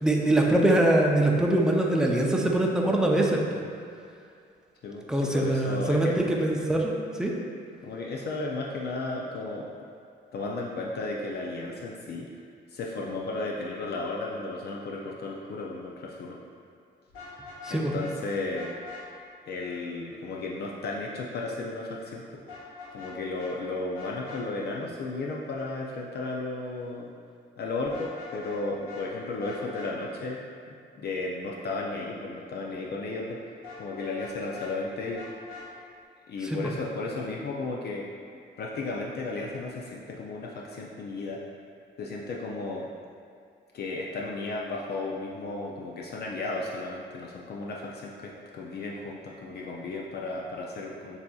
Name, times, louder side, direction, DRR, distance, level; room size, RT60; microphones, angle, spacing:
voice 1, 0.0-3.4 5.1-6.9 7.2-7.3 17.6-17.9 36.5-36.6, right 1 dB, 5° right, -1 dB, 0.5 m, -23 dB
voice 2, 4.8-6.2 7.8-9.7 10.3-12.3 12.7-16.4 17.7-18.7 19.5-22.2 22.9-27.1 27.6-30.4 30.7-33.5 33.8-35.3 36.3-38.1 38.6-41.4 42.0-42.9 43.7-51.2, left 3 dB, 55° left, -2 dB, 0.5 m, -34 dB
Vehicle horn car horn honking, 17.1-18.2 18.5-19.0 22.5-23.1 23.4-23.5 23.9-24.4 27.8-28.6 28.9-29.0 29.4-29.9 33.6-34.7 35.1-35.7, left 4 dB, 90° left, 1.4 m, -43 dB
7.0 x 2.7 x 2.3 m, 2.3 s
cardioid pair, 90°, 20 cm